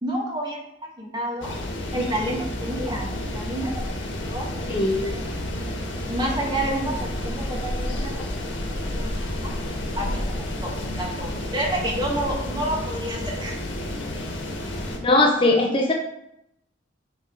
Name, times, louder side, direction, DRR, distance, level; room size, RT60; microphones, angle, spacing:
voice 1, 0.0-0.6 1.0-1.6 1.9-3.7 4.0-5.5 6.1-8.2 8.7-10.4 10.6-13.6, right 1 dB, 25° right, -2 dB, 2.0 m, -30 dB
sound 1, 1.4-15.0, left 1 dB, 80° left, 1.7 m, -30 dB
voice 2, 4.7-5.2 14.9-15.9, left 2 dB, 30° left, 1 dB, 0.8 m, -20 dB
9.0 x 4.6 x 4.7 m, 0.79 s
head